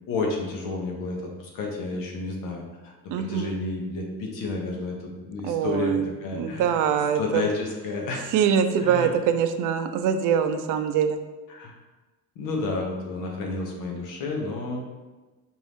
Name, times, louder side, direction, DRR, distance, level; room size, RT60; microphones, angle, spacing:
voice 1, 0.1-6.8 7.1-8.2 8.8-9.1 11.5-11.7 12.4-14.8, left 3 dB, 85° left, 0 dB, 1.0 m, -31 dB
voice 2, 3.1-3.6 5.4-6.1 6.3-7.4 8.3-11.2, right 8 dB, 75° right, 9 dB, 0.5 m, -23 dB
4.6 x 2.6 x 3.5 m, 1.2 s
cardioid pair, 105°, 32 cm